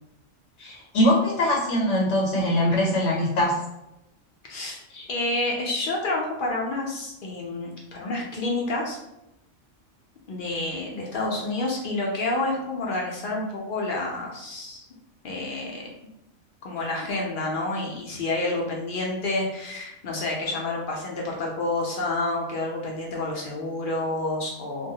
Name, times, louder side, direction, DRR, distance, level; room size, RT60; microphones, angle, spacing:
voice 1, 0.6-3.6 4.9-5.1, left 1 dB, 75° left, -3 dB, 0.9 m, -22 dB
voice 2, 5.1-9.0 10.3-14.9 15.2-15.8 16.6-24.9, left 2 dB, 60° left, -2 dB, 0.5 m, -29 dB
2.2 x 2.1 x 2.7 m, 0.89 s
omnidirectional pair, 1.3 m